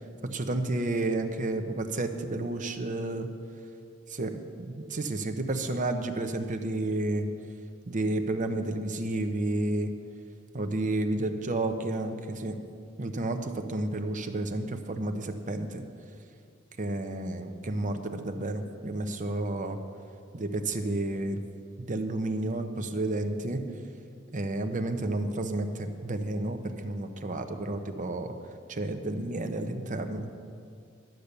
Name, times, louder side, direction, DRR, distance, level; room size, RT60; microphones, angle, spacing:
voice 1, 0.2-3.3 4.1-7.3 7.9-9.9 10.5-12.6 13.0-15.8 16.8-19.8 20.3-21.4 21.8-23.6 24.3-28.3 28.7-30.3, right 2 dB, 40° right, 7 dB, 0.8 m, -31 dB
12.0 x 8.4 x 6.7 m, 2.4 s
head